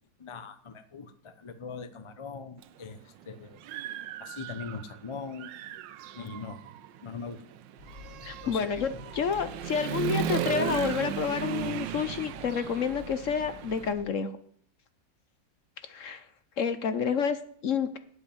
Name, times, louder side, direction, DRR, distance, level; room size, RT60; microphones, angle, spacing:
voice 1, 0.2-3.0 3.3-3.6 4.2-5.5 6.2-6.6 7.0-7.4 8.2-8.9, left 5 dB, 35° left, 11 dB, 0.4 m, -41 dB
Human voice / Motorcycle, 2.6-2.7 3.2-5.0 5.3-13.9, right 10 dB, 80° right, 1.3 m, -36 dB
sound 1, 7.8-14.0, left 5 dB, 75° left, 4.7 m, -49 dB
voice 2, 8.3-14.3 15.8-16.2 16.6-18.0, left 6 dB, 55° left, 11 dB, 1.0 m, -29 dB
10.5 x 8.0 x 9.0 m, 0.62 s
omnidirectional pair, 1.9 m